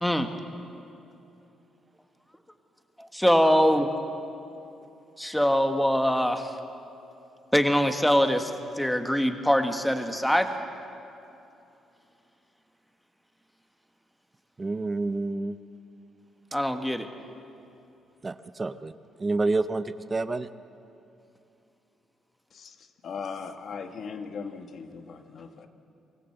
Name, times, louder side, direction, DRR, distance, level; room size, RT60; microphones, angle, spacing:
voice 1, 3.1-3.9 5.2-6.5 7.5-8.5 8.8-10.5 16.5-17.1, equal, 5° left, 6 dB, 1.5 m, -23 dB
voice 2, 14.6-15.6 18.2-18.9 19.2-20.5, right 3 dB, 25° right, 12 dB, 0.8 m, -28 dB
voice 3, 22.5-25.7, left 5 dB, 55° left, 7 dB, 1.5 m, -39 dB
24.5 x 15.5 x 7.9 m, 2.8 s
cardioid pair, 90°, 0 cm